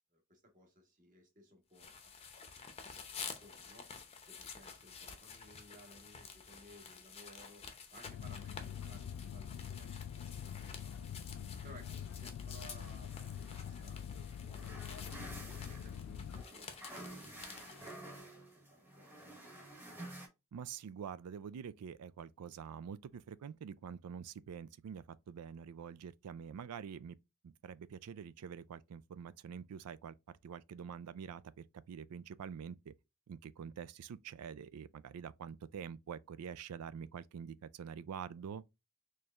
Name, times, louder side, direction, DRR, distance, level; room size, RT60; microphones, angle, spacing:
voice 1, 0.1-2.1 2.9-3.9 4.3-10.2 10.5-11.1 11.6-14.2 14.5-14.9 15.2-19.1, equal, 35° right, 1.2 m, -60 dB
sound 1, 1.8-18.0, left 6 dB, 25° left, 0.6 m, -51 dB
sound 2, 8.1-16.5, left 8 dB, 85° left, 0.3 m, -45 dB
sound 3, 12.6-20.3, right 1 dB, 10° right, 1.1 m, -52 dB
voice 2, 20.5-27.2 27.4-30.1 30.4-32.9 33.3-38.6, right 7 dB, 90° right, 0.4 m, -46 dB
4.4 x 3.2 x 2.4 m
head